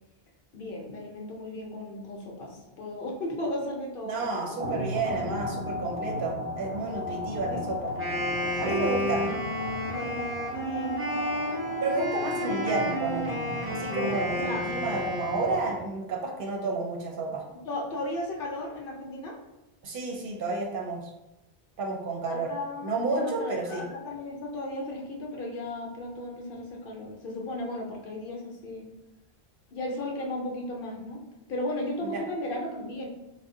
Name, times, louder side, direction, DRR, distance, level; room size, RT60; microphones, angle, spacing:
voice 1, 0.5-4.6 7.5-7.7 8.4-9.4 9.8-11.1 14.3-14.7 17.6-19.4 22.3-28.8 29.7-31.2 31.5-33.1, left 1 dB, 65° left, 0 dB, 0.8 m, -35 dB
voice 2, 4.0-7.9 8.6-9.2 11.8-13.4 13.7-17.4 19.8-21.0 21.8-22.5 22.8-23.8 32.0-32.2, right 3 dB, 65° right, 0 dB, 0.7 m, -31 dB
sound 1, 4.6-16.0, left 2 dB, 35° right, 0.9 m, -35 dB
Wind instrument woodwind instrument, 7.9-15.9, equal, 15° right, 0.5 m, -32 dB
2.6 x 2.1 x 3.6 m, 0.99 s
omnidirectional pair, 1.0 m